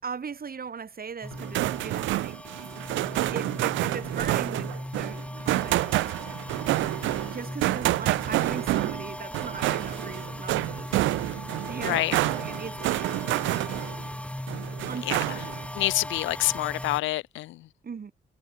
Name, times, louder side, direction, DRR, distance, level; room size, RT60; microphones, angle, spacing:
voice 1, 0.0-2.4 3.3-6.1 7.2-11.0 11.7-13.8 14.9-15.5 17.8-18.1, right 6 dB, 50° right, 6.3 m, -39 dB
sound 1, 1.2-17.0, left 1 dB, 5° left, 3.0 m, -38 dB
sound 2, 1.3-14.1 14.5-15.7, right 17 dB, 85° right, 0.6 m, -28 dB
voice 2, 11.8-12.2 15.0-15.2 15.7-17.7, left 17 dB, 85° left, 0.9 m, -27 dB
supercardioid pair, 55°, 19 cm